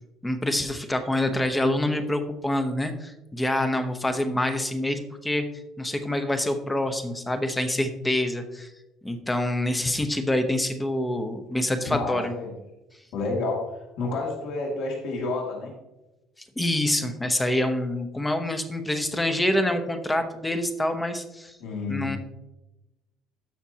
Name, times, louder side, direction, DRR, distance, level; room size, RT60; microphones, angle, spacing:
voice 1, 0.2-5.5 5.8-8.7 9.0-12.3 16.6-21.6 21.9-22.2, left 1 dB, 10° left, 7 dB, 0.8 m, -26 dB
voice 2, 11.8-12.5 13.1-15.7 21.6-22.1, left 3 dB, 60° left, -1 dB, 2.2 m, -30 dB
13.0 x 6.0 x 2.8 m, 0.96 s
cardioid pair, 160°, 0 cm